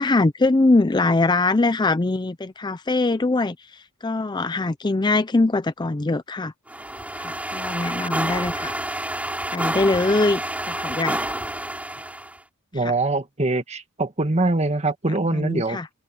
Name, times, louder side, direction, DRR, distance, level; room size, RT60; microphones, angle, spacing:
voice 1, 0.0-6.5 7.2-8.7 9.5-11.2 12.8-12.9 15.3-15.9, left 2 dB, 20° left, 0.5 m, -22 dB
sound 1, 6.7-12.4, right 1 dB, 5° right, 5.8 m, -29 dB
voice 2, 12.7-15.8, right 2 dB, 30° right, 1.8 m, -23 dB
open air
head